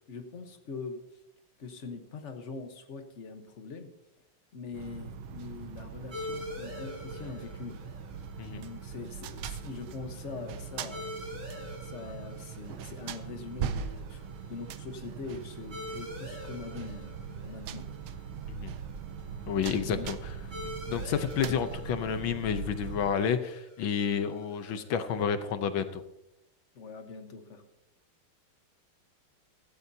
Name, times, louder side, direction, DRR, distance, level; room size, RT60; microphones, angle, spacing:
voice 1, 0.1-1.0 1.6-3.9 4.5-7.8 8.5-11.3 11.5-17.9 19.6-20.1 26.7-27.6, left 4 dB, 40° left, 6 dB, 1.2 m, -43 dB
sound 1, 4.7-23.1, right 7 dB, 80° right, 1.5 m, -40 dB
sound 2, 6.1-25.3, left 1 dB, 60° right, 5.8 m, -46 dB
voice 2, 19.5-20.3 20.9-26.0, left 7 dB, 70° left, 10 dB, 1.5 m, -30 dB
16.0 x 14.0 x 2.8 m, 0.88 s
omnidirectional pair, 2.3 m